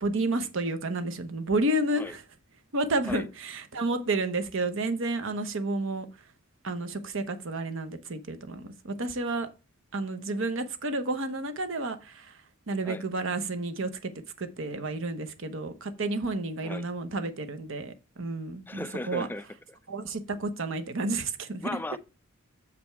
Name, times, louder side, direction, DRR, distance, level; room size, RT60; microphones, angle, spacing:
voice 1, 0.0-2.2 2.7-6.1 6.6-9.5 9.9-12.3 12.7-14.1 14.4-19.3 19.9-21.7, right 2 dB, 65° right, 0.9 m, -31 dB
voice 2, 18.7-19.4 21.6-22.0, left 2 dB, 10° left, 0.3 m, -36 dB
7.0 x 5.1 x 4.5 m
head